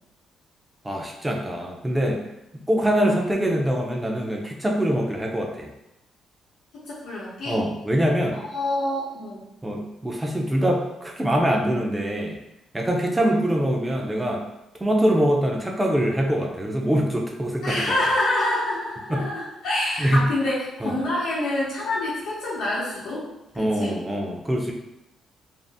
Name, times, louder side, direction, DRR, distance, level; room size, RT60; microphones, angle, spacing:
voice 1, 0.8-2.2 2.7-5.7 7.5-8.4 9.6-12.4 12.7-14.4 14.8-18.0 19.1-19.3 20.0-20.3 20.8-20.9 23.6-24.7, equal, 15° right, 0 dB, 0.5 m, -23 dB
voice 2, 6.7-7.6 8.3-9.4 13.4-13.7 17.6-23.2 23.5-24.0, left 1 dB, 85° left, -9 dB, 0.8 m, -27 dB
2.6 x 2.0 x 3.4 m, 0.89 s
cardioid pair, 90°, 0 cm